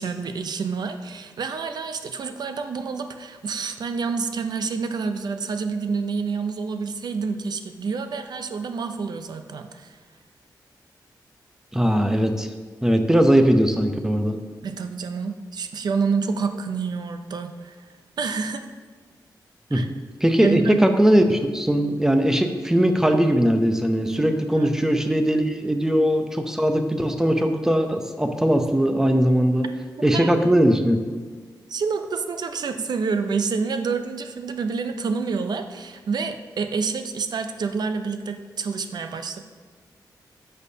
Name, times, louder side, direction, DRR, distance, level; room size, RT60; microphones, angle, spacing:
voice 1, 0.0-10.0 14.6-17.8 18.2-18.7 19.7-19.9 20.4-20.9 24.6-24.7 30.1-30.3 31.7-39.4, right 5 dB, 65° right, 7 dB, 0.6 m, -28 dB
voice 2, 11.7-12.5 12.8-14.4 19.7-19.8 20.2-29.7 30.0-31.0, equal, 5° right, 6 dB, 0.6 m, -20 dB
10.5 x 6.5 x 2.8 m, 1.5 s
wide cardioid pair, 120°, 8 cm